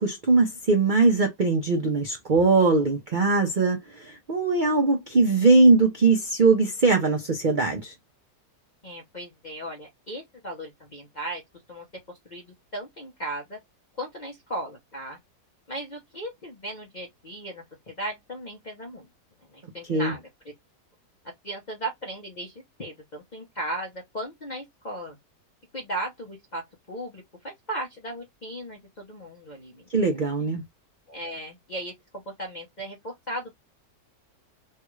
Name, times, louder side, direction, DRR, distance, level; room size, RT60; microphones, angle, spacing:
voice 1, 0.0-7.9 19.9-20.1 29.9-30.6, right 3 dB, 85° right, 0.4 m, -21 dB
voice 2, 8.8-11.4 11.7-11.8 12.2-13.6 14.0-15.2 15.7-19.1 19.5-20.3 21.4-25.2 25.7-29.8 30.1-30.3 31.1-33.6, right 1 dB, 45° left, 0.6 m, -36 dB
3.4 x 2.3 x 3.0 m
omnidirectional pair, 1.9 m